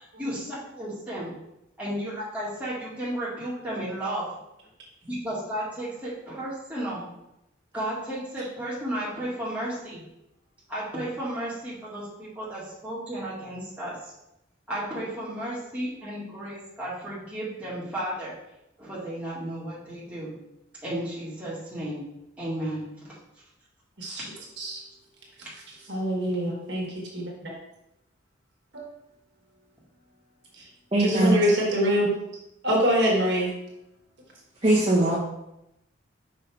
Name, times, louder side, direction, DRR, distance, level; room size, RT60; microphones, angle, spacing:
voice 1, 0.0-1.3 1.8-4.3 5.0-7.1 7.7-10.0 10.7-14.1 14.7-18.3 18.8-20.3 20.8-22.0 22.4-22.9 24.0-24.2, right 1 dB, 5° right, -8 dB, 1.8 m, -33 dB
voice 2, 25.9-27.2 28.7-28.8 31.0-32.1 32.6-33.5, equal, 60° right, -2 dB, 1.6 m, -24 dB
voice 3, 30.9-31.4 34.6-35.1, right 1 dB, 30° right, -7 dB, 1.1 m, -20 dB
5.5 x 5.5 x 3.4 m, 0.87 s
head